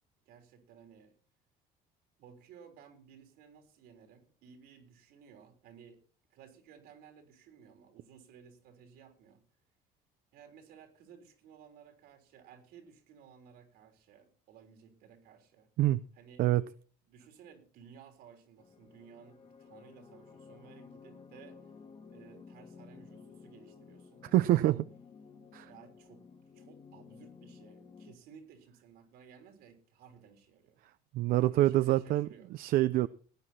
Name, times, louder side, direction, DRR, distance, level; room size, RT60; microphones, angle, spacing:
voice 1, 0.3-1.1 2.2-6.0 6.3-9.4 10.3-15.7 16.2-16.4 17.1-21.6 22.1-24.6 25.6-26.3 26.5-30.8 31.4-32.5, right 7 dB, 80° right, 3.6 m, -57 dB
sound 1, 18.6-28.1, left 5 dB, 40° left, 1.8 m, -54 dB
voice 2, 24.3-24.8 25.5-25.7 31.1-33.1, right 15 dB, 65° right, 0.5 m, -26 dB
18.5 x 9.8 x 4.2 m
cardioid pair, 130°, 16 cm